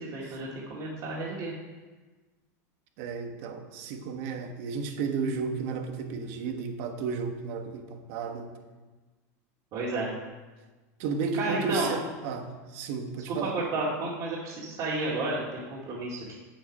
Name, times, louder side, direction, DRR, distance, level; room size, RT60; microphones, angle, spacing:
voice 1, 0.0-1.5 9.7-10.1 11.3-11.9 13.3-16.3, right 2 dB, 45° right, -7 dB, 2.3 m, -32 dB
voice 2, 3.0-8.5 11.0-13.6, right 5 dB, 60° right, 6 dB, 1.3 m, -33 dB
7.7 x 7.6 x 5.4 m, 1.3 s
supercardioid pair, 130°, 9 cm